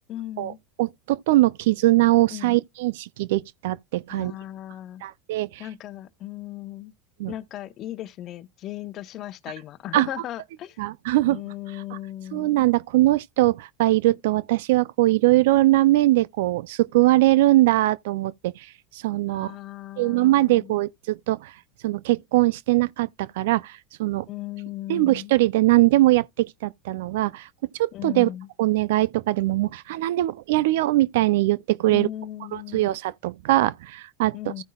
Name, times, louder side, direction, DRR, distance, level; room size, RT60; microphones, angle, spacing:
voice 1, 0.1-0.6 2.3-2.5 4.1-5.0 5.6-6.9 7.3-10.8 11.3-12.7 19.3-20.8 24.3-25.3 27.9-28.5 31.9-32.9 34.3-34.6, left 13 dB, 50° left, 0.9 m, -37 dB
voice 2, 0.8-4.3 5.0-5.6 7.2-7.3 9.9-10.1 10.8-11.4 11.9-12.0 12.3-18.5 19.0-19.5 20.0-21.5 21.8-24.3 24.9-27.5 27.8-28.3 28.6-32.1 32.5-34.6, right 17 dB, 75° right, 0.4 m, -21 dB
15.0 x 5.5 x 2.3 m
hypercardioid pair, 95°, 0 cm